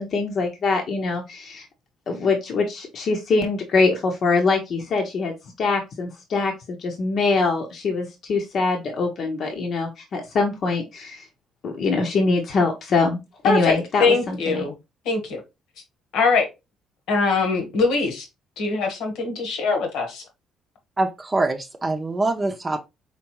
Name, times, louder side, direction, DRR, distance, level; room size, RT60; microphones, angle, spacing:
voice 1, 0.0-1.7 2.1-11.2 11.6-13.2 13.4-14.6, left 3 dB, 60° left, 0.9 m, -23 dB
voice 2, 13.4-14.7 15.0-15.4 16.1-16.5 17.1-18.3 18.6-20.2, left 4 dB, 80° left, 1.3 m, -22 dB
voice 3, 21.0-22.8, right 2 dB, 25° right, 0.6 m, -24 dB
4.3 x 3.4 x 3.0 m
supercardioid pair, 70°, 0 cm